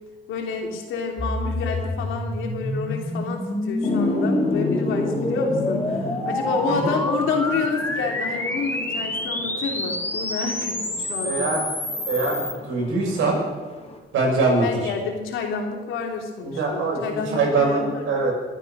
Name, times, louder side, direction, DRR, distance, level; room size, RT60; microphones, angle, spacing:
voice 1, 0.3-11.5 14.6-18.2, left 4 dB, 85° left, 2 dB, 3.0 m, -29 dB
sound 1, 1.2-12.5, left 1 dB, 10° left, 2.1 m, -28 dB
sound 2, 3.8-14.0, left 3 dB, 30° left, 3.4 m, -31 dB
voice 2, 11.2-11.6 12.1-13.4 14.1-14.9 16.4-18.3, right 3 dB, 85° right, -2 dB, 6.7 m, -23 dB
23.0 x 9.3 x 6.1 m, 1.3 s
cardioid pair, 90°, 20 cm